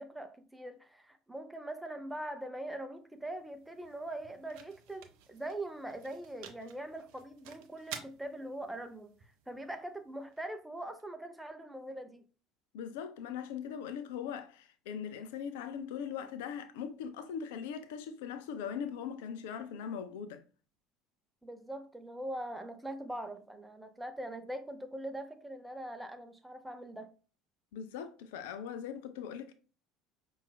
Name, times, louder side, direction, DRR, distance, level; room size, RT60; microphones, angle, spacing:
voice 1, 0.0-9.1 9.5-12.2 21.4-27.1, right 1 dB, 5° right, 0.6 m, -42 dB
sound 1, 2.9-11.0, right 7 dB, 60° right, 0.5 m, -53 dB
voice 2, 12.7-20.4 27.7-29.5, left 7 dB, 65° left, 0.3 m, -40 dB
5.4 x 2.4 x 2.2 m
figure-of-eight pair, 65°, 0 cm